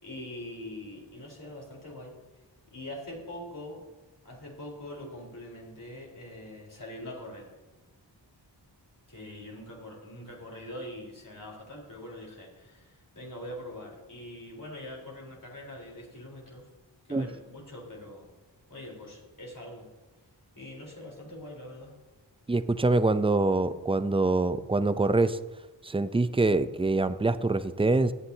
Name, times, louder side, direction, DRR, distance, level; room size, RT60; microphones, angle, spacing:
voice 1, 0.0-2.1 2.7-3.8 4.2-7.5 9.1-16.6 17.0-18.3 18.7-19.8 20.5-21.9, left 1 dB, 45° left, -2 dB, 4.2 m, -43 dB
voice 2, 22.5-25.4 25.8-28.1, right 2 dB, 15° right, 12 dB, 0.5 m, -25 dB
17.0 x 10.0 x 2.8 m, 1.2 s
wide cardioid pair, 75°, 45 cm